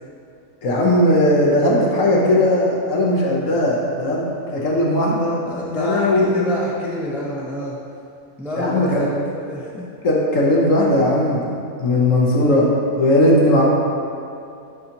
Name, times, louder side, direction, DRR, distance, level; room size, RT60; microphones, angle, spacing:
voice 1, 0.6-5.4 5.7-6.6 8.5-9.0 10.0-11.5 11.8-12.7 12.9-13.7, left 1 dB, 60° left, -3 dB, 1.3 m, -17 dB
voice 2, 5.4-7.8 8.4-9.1 9.5-9.8, left 1 dB, ahead, -5 dB, 0.4 m, -27 dB
10.5 x 4.0 x 2.9 m, 2.6 s
omnidirectional pair, 1.6 m